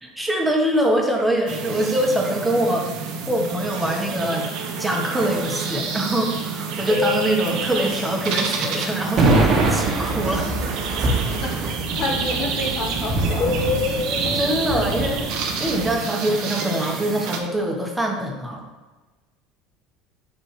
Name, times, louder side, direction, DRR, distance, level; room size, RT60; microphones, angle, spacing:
voice 1, 0.0-2.9 3.3-4.5 4.8-10.5 14.3-18.6, right 1 dB, 10° right, 0 dB, 1.4 m, -24 dB
sound 1, 1.5-17.4, right 5 dB, 65° right, 1.0 m, -29 dB
sound 2, 6.9-9.3 13.4-15.0, left 5 dB, 35° left, 0.9 m, -28 dB
sound 3, 9.2-15.9, right 2 dB, 45° right, 1.3 m, -24 dB
voice 2, 11.4-13.5, left 2 dB, 55° left, 1 dB, 1.3 m, -29 dB
7.6 x 4.7 x 3.3 m, 1.2 s
supercardioid pair, 95°, 0 cm